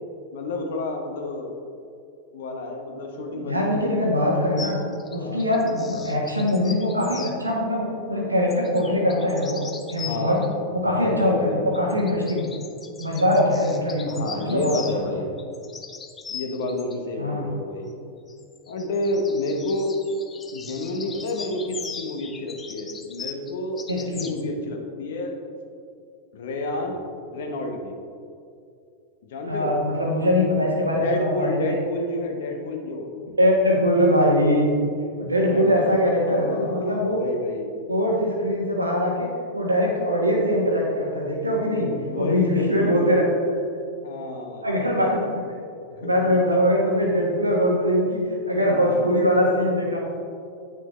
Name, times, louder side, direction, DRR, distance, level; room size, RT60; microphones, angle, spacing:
voice 1, 0.3-1.5 2.3-3.8 4.5-4.6 5.2-5.4 10.0-11.7 14.0-15.3 16.3-17.9 18.7-19.9 20.5-25.4 26.3-27.0 27.3-27.9 29.2-29.7 30.9-33.1 35.5-35.7 36.2-37.7 41.7-43.0 44.0-44.7 45.9-46.4 48.6-49.1, left 2 dB, 55° left, 3 dB, 1.0 m, -30 dB
voice 2, 3.3-4.8 5.1-10.4 10.7-12.4 13.0-14.7 17.2-17.5 23.9-24.3 29.4-31.8 33.4-34.8 35.2-37.2 37.9-43.2 44.6-45.4 46.0-50.0, equal, 85° right, -2 dB, 1.4 m, -22 dB
sound 1, 4.6-7.3 8.5-10.5 11.7-15.0 15.4-17.0 18.3-24.4, left 6 dB, 20° left, 0.5 m, -39 dB
9.1 x 5.9 x 3.1 m, 2.4 s
figure-of-eight pair, 90°, 0 cm